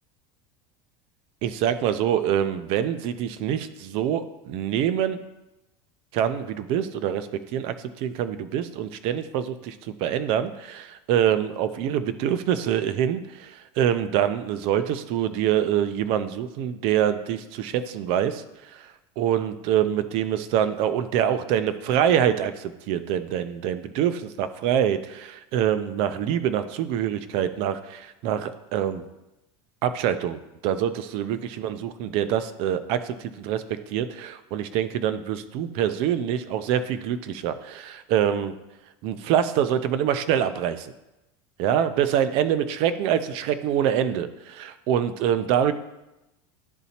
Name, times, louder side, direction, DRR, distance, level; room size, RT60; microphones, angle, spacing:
voice 1, 1.4-5.2 6.1-7.7 8.0-9.8 10.0-18.4 18.7-18.8 19.2-29.0 29.8-38.5 39.0-40.9 41.6-45.7, right 10 dB, 45° right, 12 dB, 0.5 m, -25 dB
11.5 x 4.0 x 2.8 m, 0.96 s
cardioid pair, 170°, 13 cm